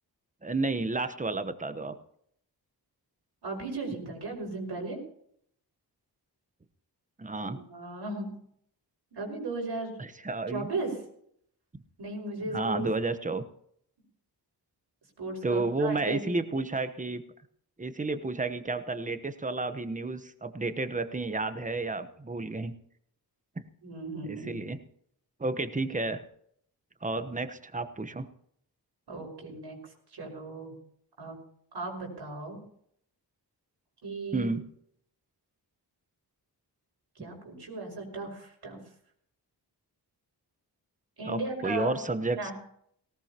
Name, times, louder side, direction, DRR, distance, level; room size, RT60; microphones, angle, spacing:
voice 1, 0.4-1.9 7.2-7.6 10.0-10.7 12.5-13.4 15.4-17.2 17.8-22.7 24.2-24.8 25.4-26.2 27.0-28.3 34.3-34.6 41.2-42.5, right 3 dB, 20° right, 10 dB, 1.0 m, -31 dB
voice 2, 3.4-5.0 7.3-8.3 9.1-9.9 10.5-11.0 12.0-12.8 15.2-16.5 23.8-24.6 29.1-29.8 30.1-30.7 31.2-31.4 31.7-32.6 34.0-34.5 37.2-38.8 41.2-42.0 42.4-42.5, right 2 dB, 75° right, 0 dB, 5.6 m, -36 dB
18.5 x 18.0 x 3.0 m, 0.67 s
wide cardioid pair, 110°, 41 cm